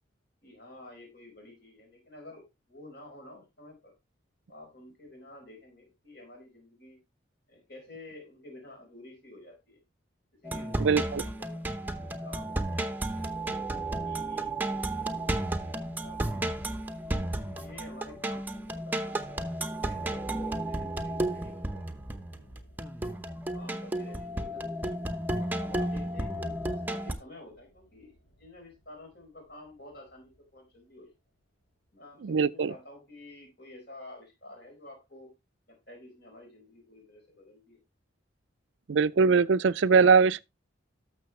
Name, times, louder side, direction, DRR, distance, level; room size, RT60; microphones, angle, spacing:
voice 1, 0.4-3.9 4.5-7.0 7.5-9.8 10.4-11.9 12.2-13.2 14.0-15.7 16.0-16.8 17.5-21.9 22.3-22.7 23.5-24.9 25.4-31.1 31.9-35.3 35.9-37.8, left 2 dB, 50° left, 4.7 m, -50 dB
sound 1, 10.4-27.1, right 1 dB, 10° right, 0.8 m, -33 dB
voice 2, 10.8-11.2 32.2-32.7 38.9-40.4, right 5 dB, 70° right, 0.4 m, -22 dB
sound 2, 13.2-31.4 31.6-31.7, equal, 70° left, 4.3 m, -56 dB
12.5 x 6.6 x 3.1 m
head